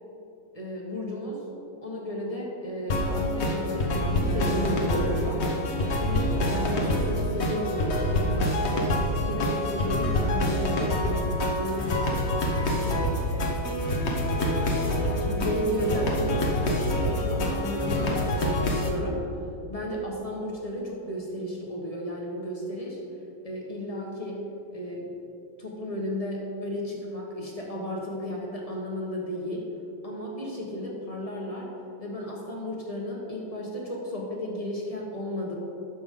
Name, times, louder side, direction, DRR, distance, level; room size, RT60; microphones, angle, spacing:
voice 1, 0.5-1.4 1.8-5.4 5.9-8.8 9.2-12.2 12.7-13.2 15.2-19.2 19.7-23.0 23.4-24.5 24.7-25.1 25.6-29.7 30.0-31.7 32.0-35.6, equal, 20° left, -3 dB, 1.1 m, -33 dB
sound 1, 2.9-18.9, left 1 dB, 45° left, 0.9 m, -26 dB
11.5 x 7.0 x 3.7 m, 2.8 s
omnidirectional pair, 2.2 m